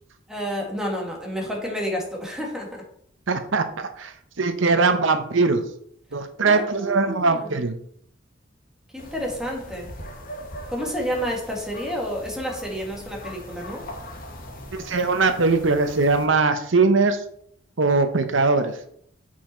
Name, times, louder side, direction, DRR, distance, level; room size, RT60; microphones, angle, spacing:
voice 1, 0.3-2.8 6.5-7.6 8.9-9.9 10.7-13.8, equal, 5° right, -1 dB, 2.0 m, -30 dB
voice 2, 3.3-5.6 6.1-7.8 14.7-17.2 17.8-18.7, right 3 dB, 75° right, 8 dB, 0.8 m, -21 dB
sound 1, 9.0-16.3, equal, 45° left, 1.5 m, -40 dB
7.5 x 5.7 x 4.4 m, 0.67 s
head